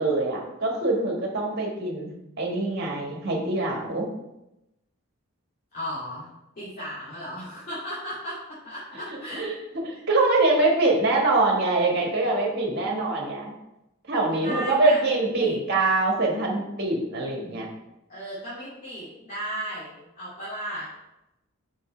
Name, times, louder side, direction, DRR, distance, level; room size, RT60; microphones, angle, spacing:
voice 1, 0.0-2.1 2.4-4.1 9.1-9.6 9.8-13.6 14.1-17.7, right 2 dB, 50° right, -1 dB, 1.5 m, -24 dB
voice 2, 5.7-6.3 6.6-9.5 14.4-15.6 18.1-20.9, equal, 40° left, -12 dB, 2.4 m, -35 dB
5.5 x 5.3 x 4.4 m, 0.90 s
head